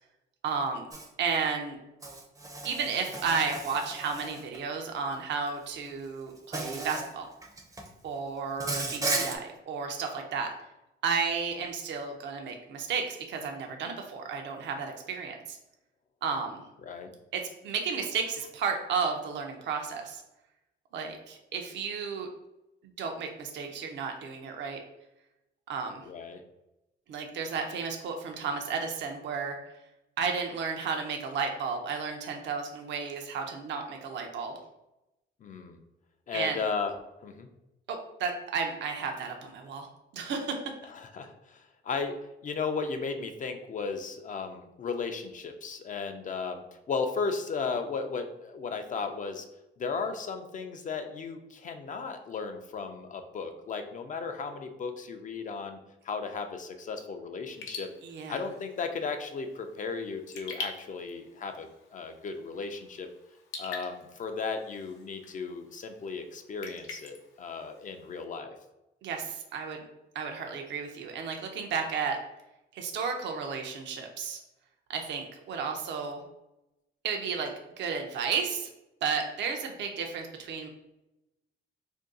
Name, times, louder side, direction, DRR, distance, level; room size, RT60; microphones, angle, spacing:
voice 1, 0.4-0.9 1.2-1.8 2.6-7.3 8.0-10.5 11.0-15.6 16.2-16.6 17.3-20.2 20.9-22.3 23.0-24.8 25.7-26.0 27.1-29.6 30.2-34.5 36.3-36.6 37.9-39.9 40.1-40.6 58.0-58.4 69.0-69.8 70.1-72.2 72.7-74.4 74.9-76.2 77.0-77.5 77.8-78.7 79.0-80.7, right 5 dB, 65° right, 3 dB, 0.5 m, -33 dB
Insect, 0.9-1.1 2.0-4.6 5.7-5.9 6.5-7.1 7.4-7.9 8.6-9.4, right 2 dB, 15° right, 0.5 m, -35 dB
voice 2, 26.0-26.4 35.4-35.8 36.3-36.9 37.2-37.5 40.9-49.5 49.8-55.8 56.0-57.9 58.3-63.1 63.6-68.6, left 5 dB, 40° left, 6 dB, 0.4 m, -35 dB
Raindrop / Drip, 57.5-68.2, left 4 dB, 85° left, 0.6 m, -46 dB
2.6 x 2.2 x 3.6 m, 0.94 s
cardioid pair, 90°, 20 cm